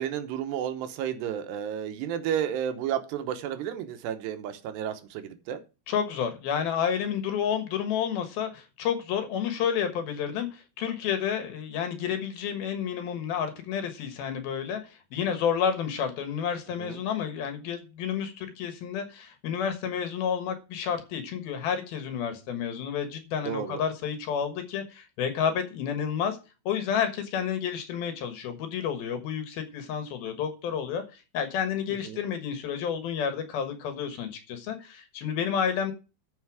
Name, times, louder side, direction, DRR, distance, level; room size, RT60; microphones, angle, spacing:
voice 1, 0.0-5.6 16.8-17.0 23.4-23.8 32.1-32.2, right 9 dB, 80° right, 3.0 m, -32 dB
voice 2, 5.9-26.4 26.7-35.9, left 8 dB, 65° left, 2.9 m, -30 dB
13.0 x 5.5 x 4.8 m
omnidirectional pair, 5.0 m